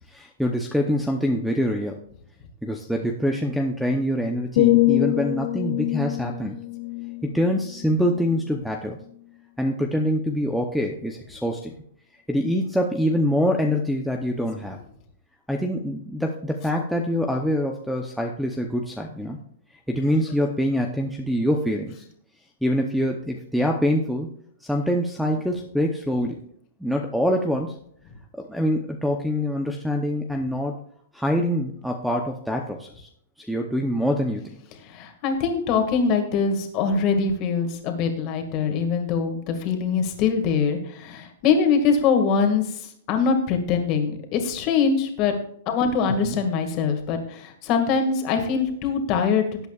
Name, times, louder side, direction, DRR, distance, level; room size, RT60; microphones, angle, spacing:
voice 1, 0.1-2.0 2.6-6.6 7.2-9.0 9.6-11.7 12.3-14.8 15.5-19.4 19.9-22.0 22.6-24.3 24.6-26.4 26.8-27.8 28.4-30.8 31.1-33.1 33.4-34.6 46.2-46.4, equal, ahead, 4 dB, 0.8 m, -25 dB
sound 1, 4.6-8.5 9.0-9.2, left 19 dB, 50° left, 0.4 m, -25 dB
voice 2, 34.8-45.3 45.7-49.7, left 5 dB, 30° left, 5 dB, 2.0 m, -23 dB
18.5 x 8.1 x 2.4 m, 0.66 s
hypercardioid pair, 165°, 0 cm